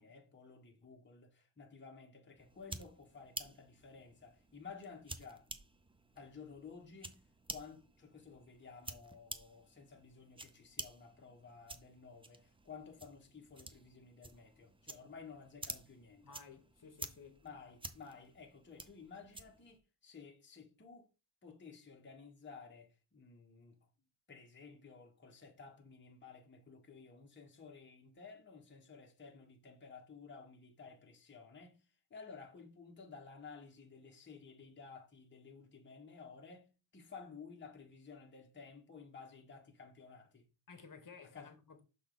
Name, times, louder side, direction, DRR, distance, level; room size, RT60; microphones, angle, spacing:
voice 1, 0.0-5.5 6.1-7.2 7.5-16.4 17.4-21.1 21.4-23.8 24.3-40.5 41.3-41.5, left 5 dB, 20° left, 1.2 m, -54 dB
sound 1, 2.4-19.8, right 2 dB, 10° right, 0.4 m, -51 dB
voice 2, 16.2-17.4 40.7-41.8, left 5 dB, 40° left, 1.4 m, -55 dB
6.3 x 4.1 x 5.2 m
wide cardioid pair, 160°, 50 cm